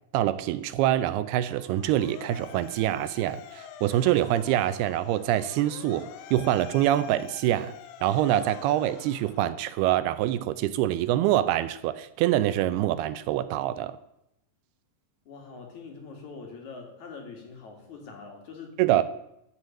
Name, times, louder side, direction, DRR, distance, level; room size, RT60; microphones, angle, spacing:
voice 1, 0.1-7.8 8.0-14.0 18.8-19.0, right 13 dB, 80° right, 14 dB, 2.5 m, -25 dB
Motor vehicle (road) / Siren, 1.4-10.0, left 10 dB, 85° left, 2.9 m, -47 dB
voice 2, 15.3-19.0, left 4 dB, 50° left, 2 dB, 3.0 m, -44 dB
14.5 x 6.5 x 8.6 m, 0.82 s
omnidirectional pair, 4.7 m